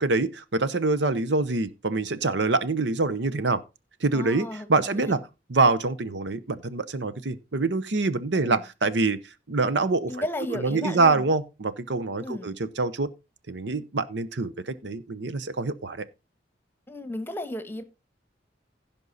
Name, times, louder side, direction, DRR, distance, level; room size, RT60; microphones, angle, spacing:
voice 1, 0.0-3.6 4.0-5.2 5.5-9.2 9.5-10.2 10.5-13.1 13.5-16.0, right 3 dB, 70° right, 0.9 m, -25 dB
voice 2, 4.1-5.2 8.3-8.6 10.1-11.2 12.2-12.5 16.9-17.8, left 1 dB, 10° left, 1.3 m, -34 dB
16.0 x 5.4 x 4.1 m
head